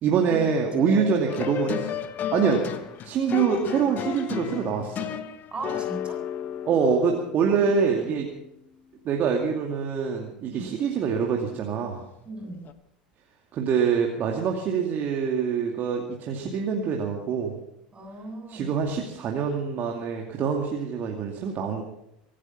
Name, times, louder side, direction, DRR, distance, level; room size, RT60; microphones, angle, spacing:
voice 1, 0.0-1.9 2.3-2.6 3.0-5.0 6.7-8.3 9.0-12.0 13.5-17.5 18.5-21.8, right 6 dB, 40° right, 1 dB, 2.4 m, -25 dB
sound 1, 1.3-8.1 12.6-12.7, left 9 dB, 40° left, 1.3 m, -33 dB
voice 2, 5.5-6.2 7.4-7.7 8.0-8.2 10.5-10.7 12.2-12.7 17.9-18.8, right 2 dB, 20° right, 3 dB, 7.9 m, -37 dB
24.5 x 10.0 x 6.0 m, 0.81 s
hypercardioid pair, 80°, 5 cm